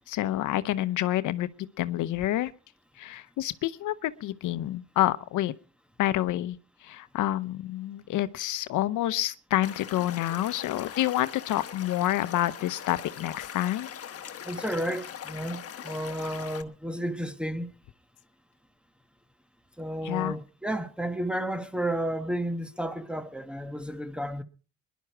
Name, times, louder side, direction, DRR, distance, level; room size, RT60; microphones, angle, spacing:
voice 1, 0.1-1.5 1.8-2.5 3.0-5.5 6.0-6.6 6.8-13.9 20.0-20.4, left 14 dB, 85° left, 0.8 m, -28 dB
Stream / Liquid, 9.6-16.6, left 8 dB, 50° left, 1.2 m, -41 dB
voice 2, 14.4-17.7 19.8-24.4, right 1 dB, 5° right, 1.3 m, -32 dB
21.0 x 11.5 x 4.6 m
cardioid pair, 90°, 30 cm